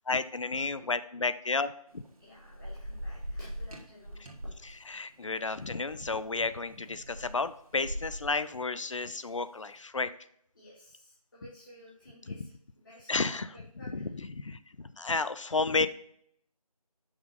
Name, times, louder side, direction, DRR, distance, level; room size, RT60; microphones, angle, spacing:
voice 1, 0.1-2.0 4.9-10.1 12.3-12.5 13.1-13.5 13.9-15.9, left 3 dB, 55° left, 14 dB, 0.4 m, -32 dB
Thunder / Rain, 1.9-9.5, equal, 65° right, 1.5 m, -43 dB
voice 2, 2.2-4.5 10.5-12.5 12.8-14.1, equal, 30° left, -9 dB, 1.6 m, -54 dB
6.1 x 4.9 x 4.0 m, 0.68 s
figure-of-eight pair, 175°, 20 cm